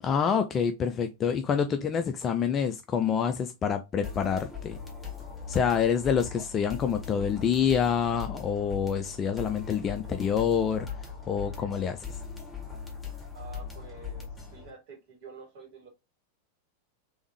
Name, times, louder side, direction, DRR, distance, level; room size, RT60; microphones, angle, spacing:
voice 1, 0.0-4.8 5.5-10.9 11.3-12.2, left 7 dB, 25° left, 0.4 m, -27 dB
sound 1, 4.0-14.7, left 6 dB, 5° left, 1.7 m, -40 dB
voice 2, 13.3-15.9, right 5 dB, 45° right, 2.7 m, -48 dB
3.6 x 3.4 x 3.1 m
figure-of-eight pair, 90°, 0 cm